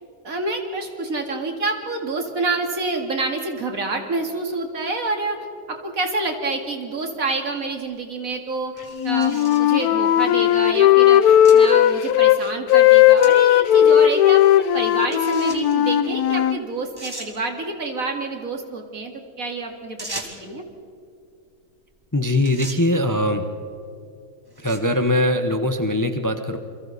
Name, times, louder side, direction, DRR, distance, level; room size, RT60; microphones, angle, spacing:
voice 1, 0.2-5.4 5.7-8.7 9.0-19.1 19.4-20.6, right 3 dB, 65° right, 4 dB, 2.6 m, -28 dB
sound 1, 7.8-7.9 8.8-9.7 10.5-10.6 11.4-11.6 12.0-12.1 13.2-13.3 13.7-13.8 15.1-15.8 16.5-16.6 17.0-17.3 20.0-20.5 21.9-22.1 22.4-22.8 23.6-23.9 24.5-24.9, right 1 dB, 15° right, 2.5 m, -37 dB
Wind instrument woodwind instrument, 9.0-12.4 12.7-16.6, left 11 dB, 85° left, 1.2 m, -16 dB
voice 2, 22.1-23.4 24.6-26.6, left 1 dB, 15° left, 7 dB, 0.9 m, -21 dB
29.0 x 23.5 x 4.2 m, 2.5 s
omnidirectional pair, 1.6 m